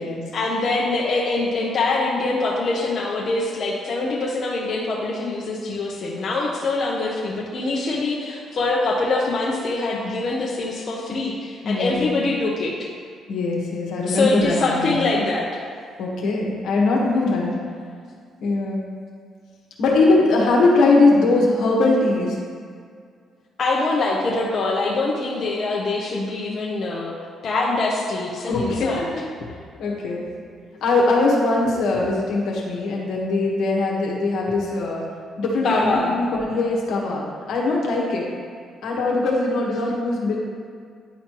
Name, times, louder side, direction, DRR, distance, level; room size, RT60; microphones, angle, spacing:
voice 1, 0.3-12.7 14.1-15.5 23.6-27.1 27.4-29.1 35.6-36.1, left 3 dB, 55° left, -4 dB, 0.9 m, -24 dB
voice 2, 11.6-12.1 13.3-15.0 16.0-17.5 18.4-18.8 19.8-22.4 28.5-28.9 29.4-29.5 29.8-30.3 30.7-35.0 35.4-38.3 38.8-40.4, left 2 dB, 80° left, -3 dB, 1.3 m, -21 dB
10.5 x 4.3 x 3.0 m, 2.1 s
cardioid pair, 90°, 0 cm